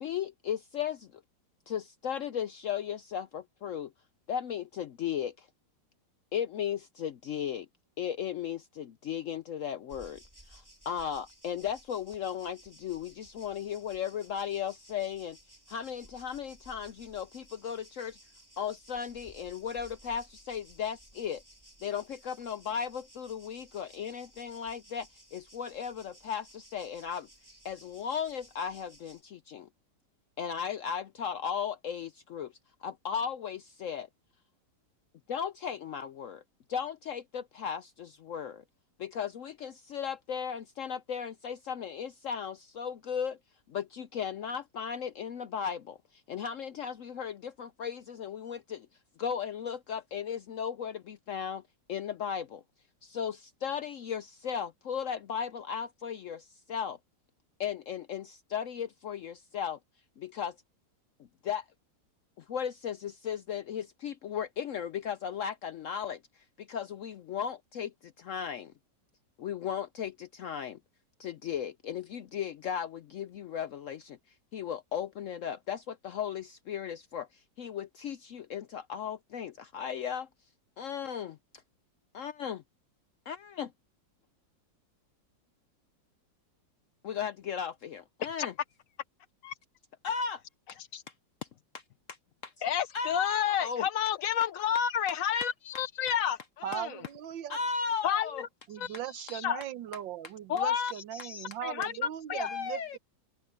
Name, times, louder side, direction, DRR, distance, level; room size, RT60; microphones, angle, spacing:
voice 1, 0.0-1.2 1.7-3.9 4.3-5.5 6.3-7.7 8.0-10.2 10.5-15.4 15.7-18.2 18.6-21.4 21.8-27.3 27.6-29.7 30.4-32.5 32.8-34.1 35.3-36.4 36.7-38.6 39.0-43.4 43.7-48.9 49.2-51.6 51.9-52.6 53.0-57.0 57.6-59.8 60.2-60.6 61.4-61.6 62.4-66.2 66.6-68.7 69.4-70.8 71.2-74.2 74.5-80.3 80.8-81.4 82.1-82.6 83.3-83.7 87.0-88.5 90.0-90.4 92.9-93.9 97.5-98.4 102.3-103.0, left 8 dB, 75° left, 0.7 m, -36 dB
sound 1, 9.9-29.2, right 1 dB, 10° right, 4.4 m, -57 dB
voice 2, 92.6-97.0 98.0-98.5 98.7-99.6 100.5-102.5, left 9 dB, 60° left, 1.0 m, -31 dB
voice 3, 96.6-97.6 98.7-103.0, right 11 dB, 80° right, 1.6 m, -39 dB
omnidirectional pair, 2.0 m